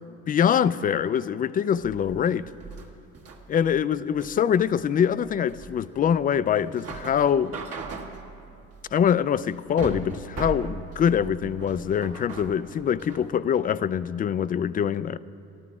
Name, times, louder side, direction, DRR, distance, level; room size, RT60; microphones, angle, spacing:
voice 1, 0.3-2.5 3.5-7.6 8.9-15.2, left 8 dB, 30° left, 16 dB, 0.3 m, -24 dB
sound 1, 1.7-13.3, right 4 dB, 50° right, 1.5 m, -39 dB
13.5 x 12.5 x 4.8 m, 2.9 s
supercardioid pair, 85°, 31 cm